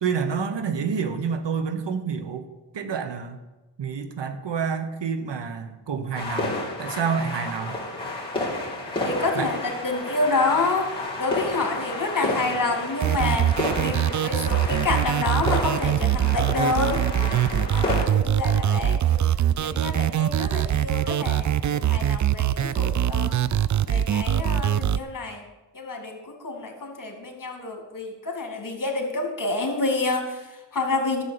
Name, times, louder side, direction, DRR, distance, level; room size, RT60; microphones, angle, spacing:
voice 1, 0.0-2.5 2.7-3.4 3.8-7.8 9.3-9.5, right 6 dB, 75° right, 9 dB, 1.3 m, -28 dB
sound 1, 6.1-18.1, left 2 dB, 10° left, 3.2 m, -31 dB
voice 2, 9.0-10.9 11.2-13.5 13.8-17.0 17.5-19.2 19.6-23.4 23.9-25.4 25.7-31.2, left 3 dB, 45° left, 3 dB, 2.4 m, -28 dB
sound 2, 13.0-25.0, right 10 dB, 45° right, 0.4 m, -23 dB
11.5 x 7.4 x 6.8 m, 1.1 s
cardioid pair, 65°, 43 cm